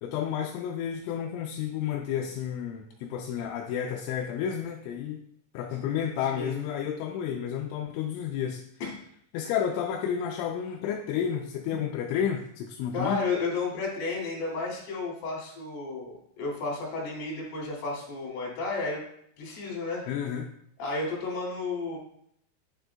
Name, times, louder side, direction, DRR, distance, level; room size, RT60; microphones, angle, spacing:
voice 1, 0.0-5.2 5.5-8.6 9.3-13.2 20.1-20.5, left 8 dB, 85° left, 2 dB, 2.8 m, -31 dB
voice 2, 12.9-19.0 19.4-20.1 20.8-22.0, left 3 dB, 60° left, -3 dB, 3.9 m, -32 dB
10.5 x 6.4 x 2.3 m, 0.69 s
omnidirectional pair, 5.7 m